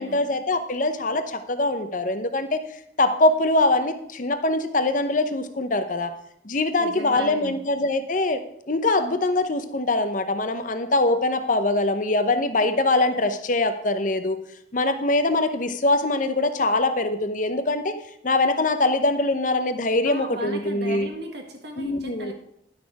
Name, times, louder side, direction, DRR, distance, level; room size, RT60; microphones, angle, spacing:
voice 1, 0.0-6.1 6.4-8.4 8.7-14.4 14.7-17.9 18.2-21.1 21.8-22.3, left 2 dB, 45° left, 9 dB, 0.7 m, -23 dB
voice 2, 6.8-7.7 20.0-22.3, right 1 dB, 60° right, 3 dB, 1.6 m, -37 dB
11.0 x 6.4 x 4.7 m, 0.75 s
head